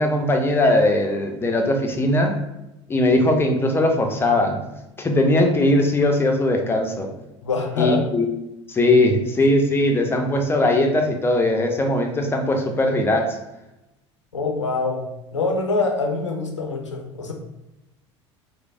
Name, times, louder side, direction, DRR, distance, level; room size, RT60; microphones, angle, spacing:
voice 1, 0.0-2.3 2.9-4.6 5.0-7.1 7.8-8.3 8.7-13.2, left 1 dB, 15° left, 3 dB, 0.5 m, -19 dB
voice 2, 7.4-8.0 14.3-15.1 15.3-17.3, left 3 dB, 85° left, 2 dB, 0.4 m, -24 dB
3.1 x 2.0 x 2.4 m, 0.91 s
figure-of-eight pair, 70°, 15 cm